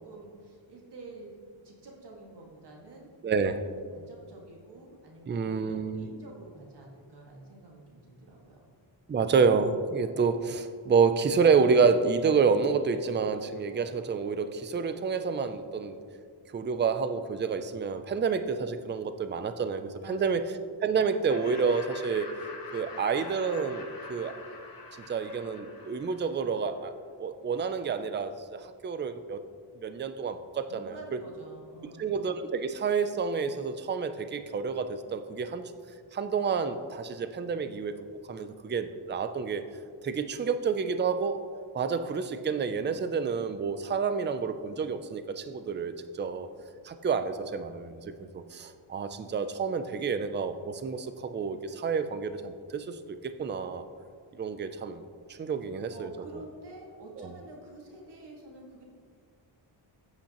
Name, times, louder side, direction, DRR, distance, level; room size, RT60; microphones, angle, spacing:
voice 1, 0.0-1.4 1.6-3.1 3.6-8.6 20.0-20.4 30.7-32.2 55.9-58.8, right 2 dB, 55° right, -1 dB, 1.9 m, -48 dB
voice 2, 3.2-3.6 5.3-6.1 9.1-16.0 16.5-20.4 20.8-22.3 22.7-24.3 25.1-26.9 27.2-29.4 29.8-30.9 32.0-35.7 36.1-37.9 38.3-39.6 40.0-41.4 41.7-46.5 46.8-53.9 54.4-55.0 55.3-56.4 57.2-57.3, right 5 dB, 25° right, 10 dB, 0.3 m, -29 dB
Laughter, 21.3-26.6, left 3 dB, 45° left, 1.4 m, -45 dB
15.5 x 8.7 x 3.0 m, 2.1 s
wide cardioid pair, 170°, 50 cm